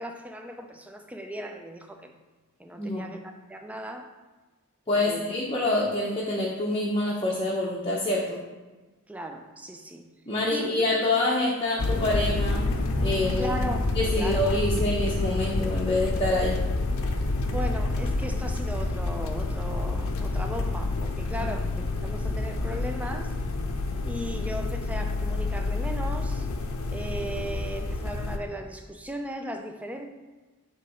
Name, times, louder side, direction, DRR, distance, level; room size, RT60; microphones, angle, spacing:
voice 1, 0.0-2.2 2.6-4.1 4.9-5.4 9.1-10.1 10.5-10.8 13.4-14.6 17.4-23.3 24.0-26.5 26.9-30.1, equal, 5° right, 4 dB, 0.4 m, -37 dB
voice 2, 4.9-8.4 10.3-12.6 13.0-13.5 13.9-16.6 21.4-21.5, left 2 dB, 25° left, -4 dB, 0.7 m, -26 dB
sound 1, 11.8-28.4, left 2 dB, 70° left, 0.6 m, -28 dB
7.5 x 3.0 x 4.9 m, 1.2 s
head